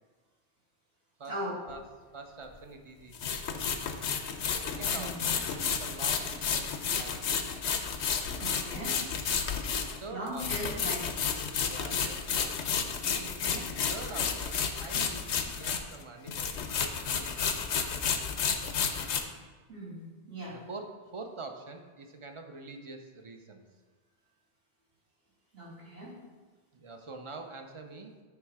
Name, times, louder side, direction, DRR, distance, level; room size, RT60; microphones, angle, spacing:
voice 1, 1.3-1.6 4.9-5.3 8.4-9.0 10.1-11.0 13.1-13.8 19.7-20.6 25.5-26.2, right 1 dB, 70° right, -9 dB, 2.8 m, -39 dB
sound 1, 1.7-1.8 3.1-16.0 16.3-19.2, left 6 dB, 85° left, 1.0 m, -31 dB
voice 2, 2.1-3.7 4.4-5.4 5.7-7.2 9.8-10.9 11.6-12.6 13.4-13.5 13.9-17.5 20.5-23.6 26.7-28.1, right 3 dB, 35° right, 4 dB, 0.5 m, -45 dB
9.1 x 3.3 x 4.7 m, 1.3 s
omnidirectional pair, 1.1 m